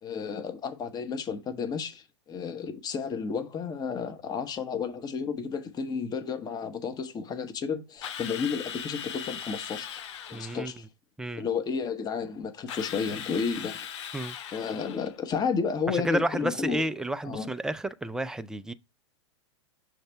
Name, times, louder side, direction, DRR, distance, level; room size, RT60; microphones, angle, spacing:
voice 1, 0.0-10.0 10.3-10.8 11.4-13.8 14.5-16.8 17.2-17.5, left 6 dB, 25° left, 0.9 m, -32 dB
Drill, 8.0-10.7 12.7-15.2, left 8 dB, 70° left, 0.7 m, -39 dB
voice 2, 10.3-10.7 11.2-11.5 14.1-14.4 15.9-18.7, right 1 dB, 5° right, 0.3 m, -31 dB
6.5 x 3.3 x 4.5 m
hypercardioid pair, 110°, 16 cm